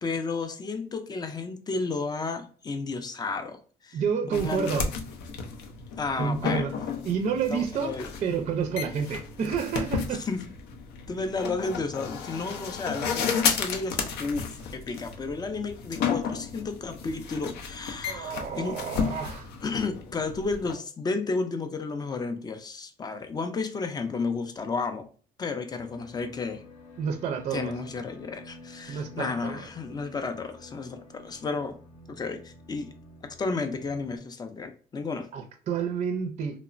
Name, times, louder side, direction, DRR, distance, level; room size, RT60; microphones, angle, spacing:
voice 1, 0.0-4.0 4.3-4.8 6.0-6.6 7.5-8.1 10.3-10.4 11.1-18.8 19.6-25.1 25.4-26.6 27.5-31.8 32.1-32.9 33.4-35.3, left 4 dB, 25° left, 8 dB, 0.4 m, -32 dB
voice 2, 3.9-4.9 6.2-6.7 7.0-8.0 8.2-10.2 18.0-19.5 27.0-27.7 28.9-29.7 35.3-36.6, right 6 dB, 40° right, 5 dB, 0.4 m, -29 dB
sound 1, 4.3-20.7, left 6 dB, 80° left, 0.5 m, -33 dB
sound 2, 25.8-34.2, left 2 dB, 45° left, 0.8 m, -50 dB
3.0 x 2.0 x 2.4 m, 0.41 s
cardioid pair, 110°, 17 cm